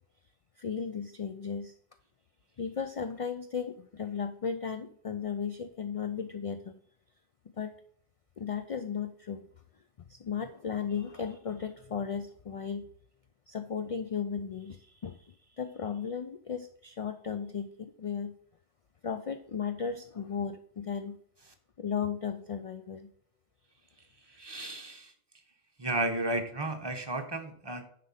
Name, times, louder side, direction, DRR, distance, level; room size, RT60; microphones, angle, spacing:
voice 1, 0.6-1.7 2.6-6.7 7.6-7.7 8.4-9.4 10.0-12.9 13.5-18.4 19.0-21.2 21.8-23.1, left 6 dB, 55° left, 8 dB, 0.4 m, -35 dB
voice 2, 24.4-25.1 25.8-27.8, right 2 dB, 25° right, 5 dB, 0.9 m, -33 dB
9.9 x 3.8 x 5.6 m, 0.62 s
omnidirectional pair, 1.2 m